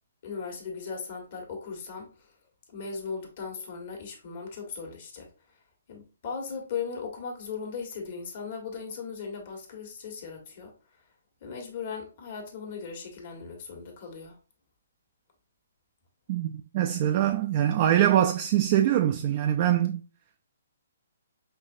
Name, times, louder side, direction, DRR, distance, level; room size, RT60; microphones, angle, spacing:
voice 1, 0.2-2.3 2.7-5.3 5.9-10.7 11.4-14.4, left 5 dB, 50° left, 1.5 m, -38 dB
voice 2, 16.3-20.0, right 11 dB, 40° right, 0.4 m, -23 dB
5.3 x 2.6 x 2.6 m
hypercardioid pair, 145°, 0 cm